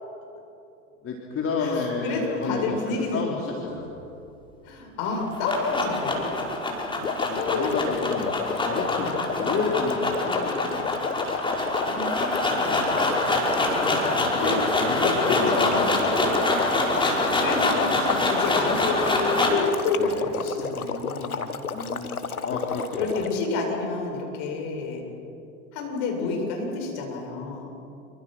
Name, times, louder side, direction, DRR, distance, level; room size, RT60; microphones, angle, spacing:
voice 1, 1.0-2.8 3.1-3.9 7.3-10.8 14.1-14.4 14.8-16.1 20.0-20.1 21.7-23.1, left 4 dB, 30° left, -1 dB, 3.7 m, -30 dB
voice 2, 1.6-3.6 4.6-6.3 7.3-7.7 8.9-9.1 11.8-13.3 13.7-14.1 14.4-15.8 17.0-21.4 22.9-25.0 25.7-27.7, left 4 dB, 50° left, 1 dB, 8.0 m, -30 dB
sound 1, 5.1-19.7, left 2 dB, 10° left, 5.2 m, -25 dB
sound 2, 7.0-23.5, left 6 dB, 85° left, 1.5 m, -31 dB
28.0 x 25.5 x 6.3 m, 2.7 s
figure-of-eight pair, 90°, 43 cm